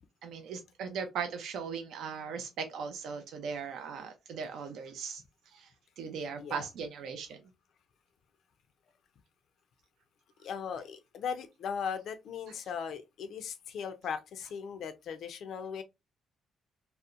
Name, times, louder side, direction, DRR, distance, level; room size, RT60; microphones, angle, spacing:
voice 1, 0.2-7.4 12.5-12.6, right 6 dB, 80° right, 0.4 m, -39 dB
voice 2, 10.4-15.8, left 7 dB, 70° left, 0.3 m, -38 dB
2.7 x 2.1 x 2.3 m
cardioid pair, 90°, 0 cm